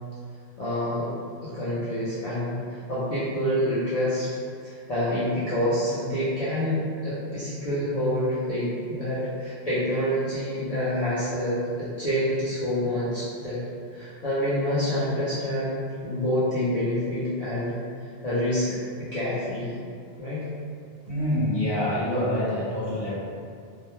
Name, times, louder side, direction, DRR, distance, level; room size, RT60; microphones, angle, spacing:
voice 1, 0.6-1.1 1.4-2.6 2.9-13.6 13.9-17.8 18.2-19.8 20.2-20.5, equal, 50° left, -12 dB, 0.5 m, -27 dB
voice 2, 21.1-23.2, left 1 dB, 30° right, -12 dB, 0.7 m, -26 dB
2.1 x 2.1 x 3.0 m, 2.2 s
omnidirectional pair, 1.1 m